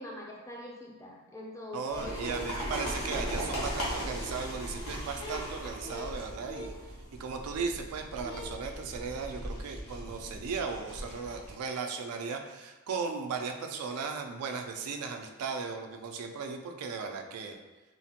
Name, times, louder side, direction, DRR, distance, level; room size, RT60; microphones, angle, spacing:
voice 1, 0.0-2.5, left 1 dB, 15° left, -1 dB, 0.3 m, -43 dB
voice 2, 1.7-6.7 7.2-17.6, right 5 dB, 80° right, 5 dB, 0.3 m, -36 dB
sound 1, 1.9-11.5, equal, 85° left, 0.9 m, -38 dB
3.0 x 2.1 x 2.8 m, 1.2 s
head